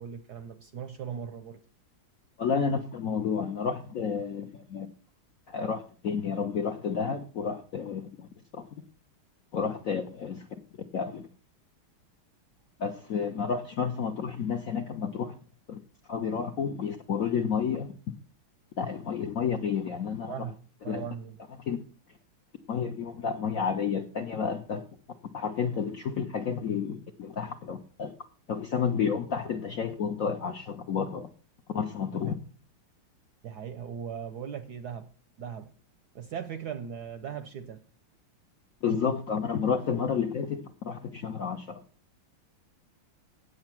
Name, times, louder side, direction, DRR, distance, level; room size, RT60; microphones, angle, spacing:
voice 1, 0.0-1.6 20.2-21.4 33.4-35.1 35.4-35.7 36.1-37.8, right 8 dB, 70° right, 1.0 m, -39 dB
voice 2, 2.4-4.9 5.5-8.6 9.5-10.4 10.9-11.3 12.8-15.3 15.7-15.8 16.1-17.9 18.8-20.3 20.9-21.0 21.7-21.8 22.7-24.8 25.3-28.1 28.5-31.3 31.7-32.3 38.8-41.8, left 6 dB, 65° left, 0.8 m, -31 dB
8.5 x 7.8 x 5.9 m
omnidirectional pair, 2.3 m